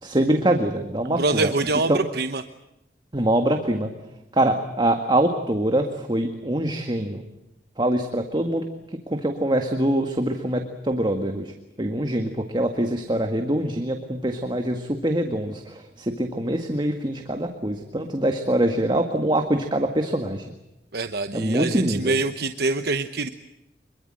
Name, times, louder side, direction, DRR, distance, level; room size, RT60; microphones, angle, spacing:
voice 1, 0.0-1.5 1.9-2.0 3.1-3.9 4.3-7.2 7.8-8.6 9.1-11.5 11.8-20.5 21.3-22.1, right 1 dB, 25° right, 5 dB, 1.8 m, -24 dB
voice 2, 1.0-2.4 20.9-23.3, right 3 dB, 60° right, 8 dB, 1.0 m, -25 dB
25.5 x 23.0 x 7.7 m, 0.91 s
head